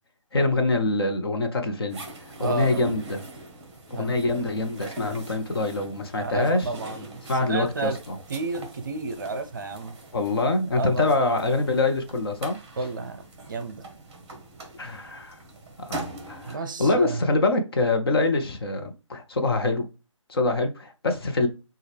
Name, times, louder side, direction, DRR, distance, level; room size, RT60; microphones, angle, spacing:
voice 1, 0.3-2.0 2.4-3.2 3.9-6.7 7.3-8.2 10.1-12.6 14.8-15.4 15.8-19.9 20.3-21.5, left 2 dB, 50° left, 0.8 m, -25 dB
sound 1, 1.9-16.6, right 2 dB, 15° right, 1.0 m, -42 dB
voice 2, 2.4-3.0 3.9-4.2 6.2-8.0 8.3-9.9 10.8-11.2 12.7-13.9 16.5-17.2, right 3 dB, 40° right, 0.6 m, -32 dB
6.1 x 2.4 x 3.3 m
figure-of-eight pair, 150°, 17 cm